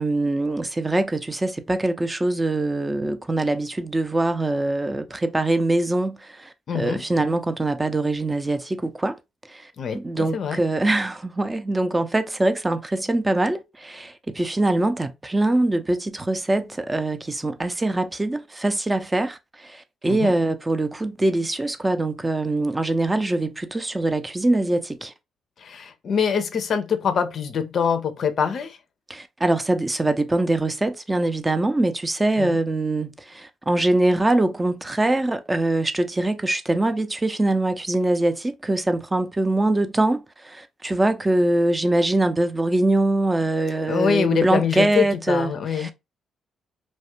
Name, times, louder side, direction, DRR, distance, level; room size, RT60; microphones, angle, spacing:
voice 1, 0.0-9.2 9.5-25.1 29.1-45.9, right 2 dB, 20° right, 0.4 m, -23 dB
voice 2, 6.7-7.0 9.8-10.6 20.1-20.3 25.6-28.8 32.4-32.5 43.9-45.9, left 7 dB, 60° left, 0.4 m, -24 dB
2.3 x 2.1 x 2.9 m
hypercardioid pair, 50°, 0 cm